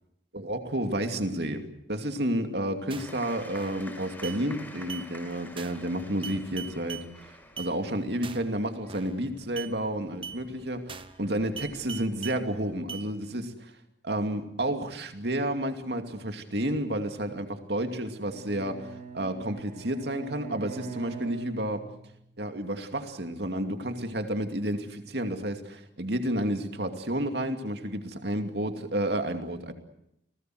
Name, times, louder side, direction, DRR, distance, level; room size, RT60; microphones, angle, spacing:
voice 1, 0.3-7.3 7.6-13.7 14.0-18.9 19.1-21.9 22.4-29.7, right 1 dB, 65° right, 6 dB, 2.6 m, -31 dB
sound 1, 2.9-3.2 3.6-3.9 4.2-4.4 4.9-5.1 5.6-5.9 6.2-7.1 7.6-7.7 8.2-8.5 8.9-9.2 9.6-9.7 10.2-10.4 10.9-11.2 11.6-12.4 12.9-13.1, right 7 dB, 30° right, 1.0 m, -40 dB
sound 2, 3.0-12.8, left 1 dB, 10° left, 5.6 m, -50 dB
Bowed string instrument, 17.9-22.3, right 5 dB, 45° right, 5.0 m, -43 dB
29.5 x 19.5 x 7.9 m, 0.77 s
head